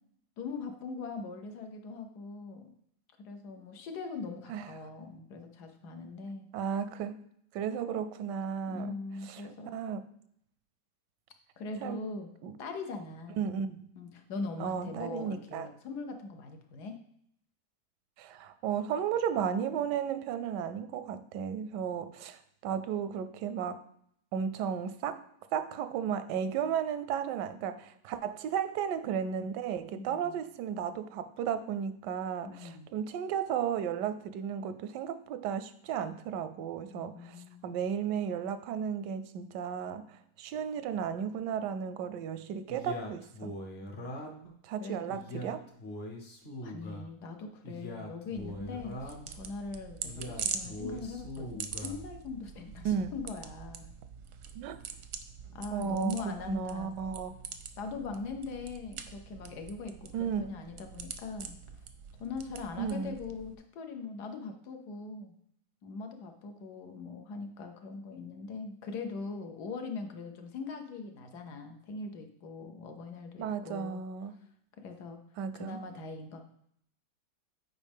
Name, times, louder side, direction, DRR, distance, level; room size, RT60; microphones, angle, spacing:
voice 1, 0.4-2.7 3.2-6.5 8.7-9.7 11.6-12.3 12.6-13.5 13.9-17.0 29.9-30.4 32.4-32.9 36.9-37.8 43.8-44.1 44.8-45.3 46.6-53.9 55.5-57.0 57.8-61.6 62.2-65.3 65.8-74.0 74.8-75.2 75.5-76.4, left 4 dB, 75° left, 5 dB, 1.4 m, -41 dB
voice 2, 6.5-7.2 7.5-8.9 9.2-9.4 9.7-10.0 11.8-12.0 12.4-12.5 13.4-13.9 14.6-15.7 18.2-23.8 24.3-25.2 25.5-37.4 37.6-43.5 44.6-45.6 52.8-53.1 54.5-54.8 55.7-57.3 60.1-60.5 62.8-63.1 73.4-74.3 75.4-75.8, right 8 dB, 85° right, 11 dB, 1.2 m, -34 dB
Male speech man speaking, 42.7-44.5 45.1-47.1 47.6-49.3 50.0-52.0, left 1 dB, 45° left, 1.0 m, -42 dB
sound 1, 48.4-63.5, right 7 dB, 65° right, 0.8 m, -44 dB
8.3 x 5.0 x 3.5 m, 0.69 s
omnidirectional pair, 1.8 m